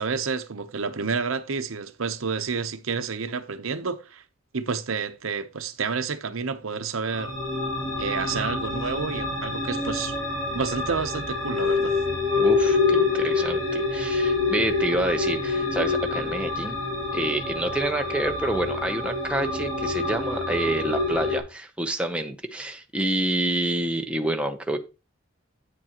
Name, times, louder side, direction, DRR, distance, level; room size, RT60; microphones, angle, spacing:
voice 1, 0.0-4.2 4.5-7.4 8.0-10.1 10.5-12.0, right 5 dB, 80° right, 0.8 m, -29 dB
sound 1, 7.1-21.4, left 3 dB, 25° left, 3.5 m, -26 dB
voice 2, 12.4-16.8 17.1-24.8, right 1 dB, 5° right, 0.7 m, -28 dB
8.7 x 7.3 x 2.9 m
head